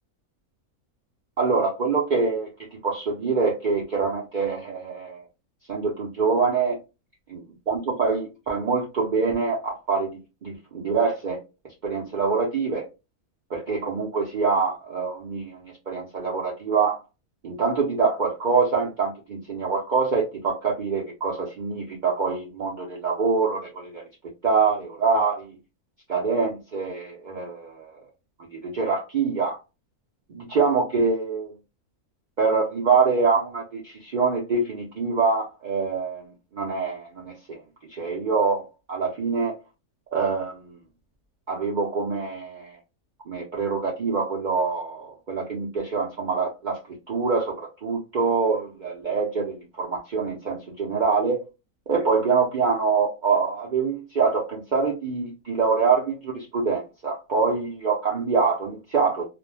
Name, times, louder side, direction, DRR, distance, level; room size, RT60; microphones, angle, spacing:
voice 1, 1.4-5.2 5.7-6.8 7.3-7.4 7.7-10.1 10.4-11.4 11.8-12.8 13.5-17.0 17.4-24.0 24.4-25.6 26.1-28.0 28.5-29.6 30.3-31.6 32.4-36.2 36.5-37.6 37.9-38.6 38.9-39.5 40.1-40.8 41.5-42.8 43.3-46.8 47.1-51.4 51.9-59.3, right 4 dB, 75° right, -2 dB, 0.4 m, -25 dB
2.4 x 2.1 x 3.2 m, 0.28 s
omnidirectional pair, 1.6 m